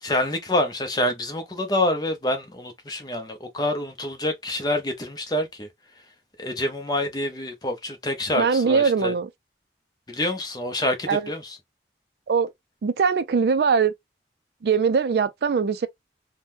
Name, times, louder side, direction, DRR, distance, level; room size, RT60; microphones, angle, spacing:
voice 1, 0.0-5.7 6.4-9.1 10.1-11.6, left 1 dB, 20° left, 0.6 m, -27 dB
voice 2, 8.4-9.3 11.1-11.3 12.3-12.5 12.8-13.9 14.6-15.9, right 5 dB, 65° right, 0.4 m, -21 dB
2.7 x 2.2 x 3.4 m
head